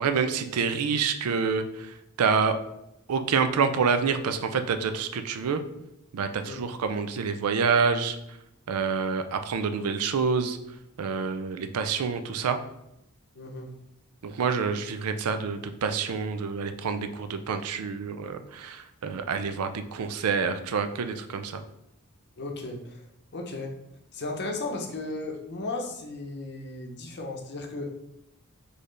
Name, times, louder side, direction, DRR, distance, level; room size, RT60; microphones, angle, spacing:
voice 1, 0.0-1.6 2.2-2.6 3.1-5.6 6.1-8.2 8.7-10.6 11.0-12.6 14.2-21.6, right 5 dB, 85° right, 9 dB, 0.4 m, -27 dB
voice 2, 13.3-13.7 22.4-22.8 23.3-23.7 24.1-27.9, left 2 dB, 50° left, 2 dB, 0.7 m, -35 dB
4.3 x 3.3 x 3.2 m, 0.84 s
head